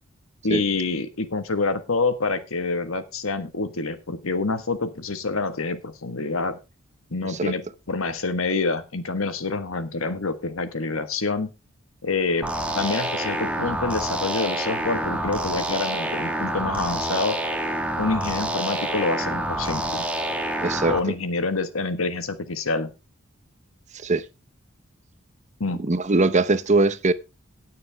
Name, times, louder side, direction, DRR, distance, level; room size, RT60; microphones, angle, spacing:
voice 1, 0.4-6.6 7.1-11.5 12.0-12.5 12.7-17.4 18.0-20.1 20.9-22.9 25.6-25.8, left 3 dB, 90° left, 1.5 m, -27 dB
sound 1, 12.4-21.0, right 1 dB, 5° right, 1.5 m, -27 dB
voice 2, 20.6-21.0 23.9-24.2 25.8-27.1, right 3 dB, 35° right, 0.8 m, -21 dB
18.5 x 6.7 x 3.4 m
head